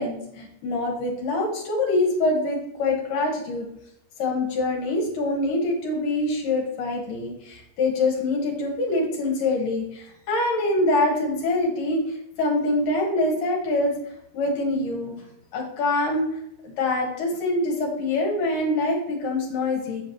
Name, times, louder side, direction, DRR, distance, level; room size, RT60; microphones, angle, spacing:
voice 1, 0.0-3.7 4.2-13.9 14.3-15.1 15.5-20.0, left 2 dB, 70° left, -1 dB, 2.9 m, -25 dB
7.6 x 7.1 x 3.1 m, 0.76 s
omnidirectional pair, 4.0 m